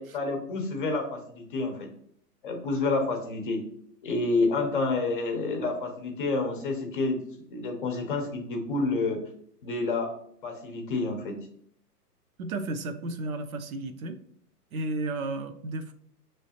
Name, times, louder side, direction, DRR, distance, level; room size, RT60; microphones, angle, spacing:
voice 1, 0.0-1.9 2.4-3.6 4.0-7.2 7.5-9.2 9.6-10.1 10.4-11.4, left 3 dB, 30° left, 4 dB, 0.7 m, -29 dB
voice 2, 12.4-14.2 14.7-15.9, right 2 dB, 60° right, 8 dB, 0.6 m, -33 dB
5.9 x 3.2 x 2.8 m, 0.65 s
hypercardioid pair, 145°, 49 cm